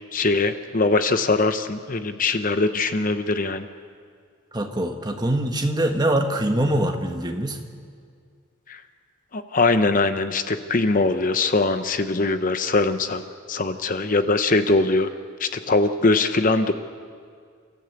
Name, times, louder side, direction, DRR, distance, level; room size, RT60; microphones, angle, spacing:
voice 1, 0.1-3.7 8.7-8.8 9.3-13.2 13.5-15.1 15.4-16.7, left 3 dB, 40° left, 9 dB, 0.8 m, -21 dB
voice 2, 4.5-7.6, right 1 dB, 20° right, 4 dB, 1.5 m, -23 dB
30.0 x 14.0 x 8.2 m, 2.1 s
head